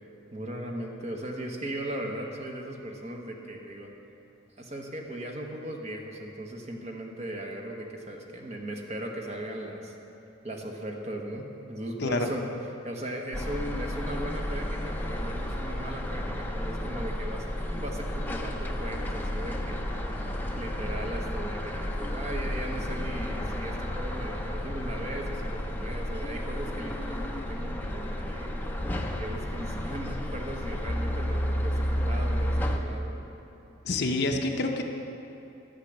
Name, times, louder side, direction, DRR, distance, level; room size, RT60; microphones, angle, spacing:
voice 1, 0.3-3.9 4.6-9.9 10.4-12.4 12.8-19.9 20.6-28.6 29.2-33.3, right 1 dB, 30° right, 1 dB, 1.1 m, -38 dB
sound 1, 13.3-32.8, equal, 10° left, 0.6 m, -32 dB
voice 2, 33.8-34.8, left 2 dB, 50° left, 3 dB, 0.8 m, -27 dB
12.0 x 7.5 x 6.6 m, 2.9 s
head